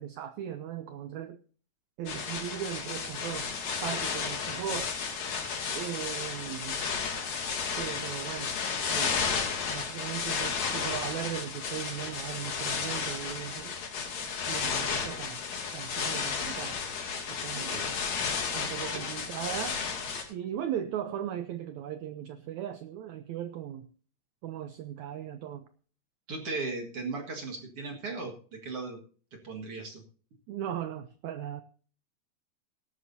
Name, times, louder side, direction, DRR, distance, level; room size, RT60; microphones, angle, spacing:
voice 1, 0.0-1.4 2.0-5.0 5.7-6.8 7.8-8.5 8.9-9.2 9.6-13.8 14.5-15.4 15.7-16.8 17.3-17.8 18.5-19.8 20.3-23.9 24.4-25.6 30.5-31.6, right 10 dB, 85° right, 10 dB, 1.6 m, -38 dB
sound 1, 2.1-20.2, left 6 dB, 70° left, 4.3 m, -33 dB
voice 2, 17.5-17.9 18.9-19.0 26.3-29.0 29.4-30.0, right 3 dB, 45° right, 2 dB, 2.3 m, -37 dB
17.0 x 12.5 x 2.8 m, 0.40 s
omnidirectional pair, 4.3 m